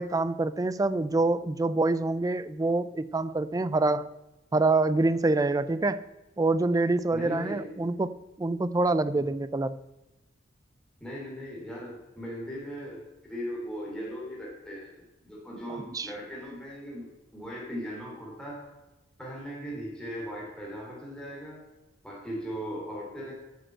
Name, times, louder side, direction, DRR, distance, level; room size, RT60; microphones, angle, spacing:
voice 1, 0.0-4.1 4.5-6.1 6.4-9.8 15.9-16.1, right 2 dB, 20° right, 15 dB, 0.4 m, -26 dB
voice 2, 7.1-7.6 11.0-14.9 15.2-18.6 19.2-21.6 22.0-23.3, equal, 5° left, -5 dB, 2.9 m, -38 dB
8.9 x 6.7 x 7.6 m, 1.1 s
head